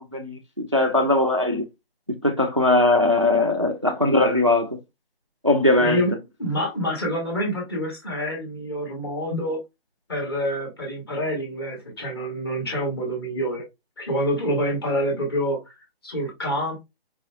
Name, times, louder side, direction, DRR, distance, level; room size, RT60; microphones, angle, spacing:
voice 1, 0.1-1.7 2.1-4.8 5.4-6.0, left 2 dB, 30° right, 0.4 m, -20 dB
voice 2, 5.8-6.1 6.4-9.6 10.1-13.6 14.0-15.7 16.0-16.8, equal, 25° left, 2.0 m, -27 dB
4.7 x 3.8 x 2.3 m
figure-of-eight pair, 175°, 30 cm